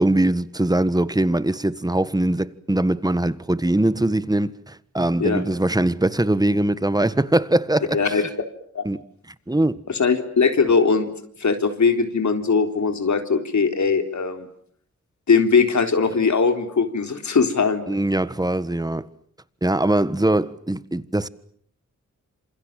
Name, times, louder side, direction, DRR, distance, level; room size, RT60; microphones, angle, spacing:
voice 1, 0.0-8.2 8.8-9.0 9.5-9.8 17.9-19.1 19.6-21.3, right 1 dB, 15° right, 1.5 m, -21 dB
voice 2, 9.9-11.1 11.4-14.4 15.3-17.9, left 5 dB, 70° left, 3.9 m, -20 dB
28.0 x 27.5 x 7.6 m
cardioid pair, 70°, 30 cm